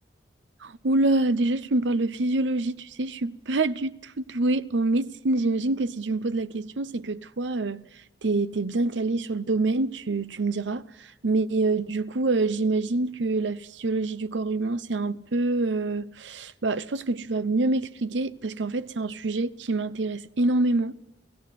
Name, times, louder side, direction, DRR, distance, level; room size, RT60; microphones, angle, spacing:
voice 1, 0.6-7.9 8.2-20.9, right 2 dB, 90° right, 0.8 m, -26 dB
29.5 x 16.0 x 6.0 m
head